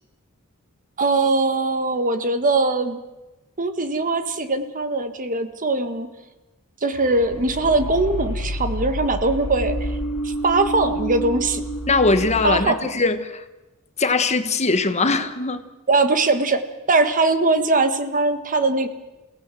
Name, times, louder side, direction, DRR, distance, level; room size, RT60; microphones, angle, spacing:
voice 1, 1.0-3.0 3.6-6.1 6.8-10.0 10.2-11.6 12.4-12.9 15.9-16.6 16.9-18.9, right 3 dB, 35° right, 1.6 m, -21 dB
sound 1, 6.9-12.7, equal, 70° left, 1.7 m, -29 dB
voice 2, 11.9-13.4 14.0-15.6, left 3 dB, 30° left, 1.2 m, -21 dB
28.5 x 17.5 x 7.7 m
head